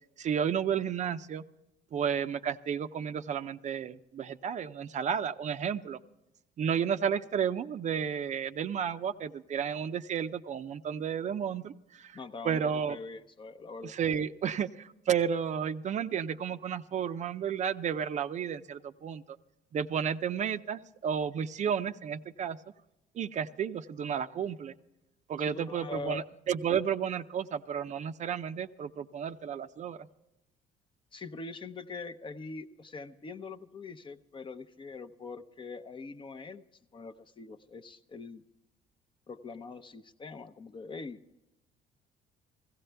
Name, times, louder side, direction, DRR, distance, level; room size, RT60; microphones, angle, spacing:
voice 1, 0.2-1.4 1.9-6.0 6.6-12.2 12.4-13.0 13.8-19.4 19.7-22.6 23.1-24.7 25.3-30.1, right 8 dB, 45° right, 11 dB, 0.5 m, -32 dB
voice 2, 12.1-12.6 12.9-13.9 25.4-26.3 31.1-36.6 36.9-38.4 39.3-41.2, left 3 dB, 30° left, 9 dB, 0.7 m, -43 dB
16.5 x 15.5 x 3.4 m, 0.93 s
cardioid pair, 110°, 17 cm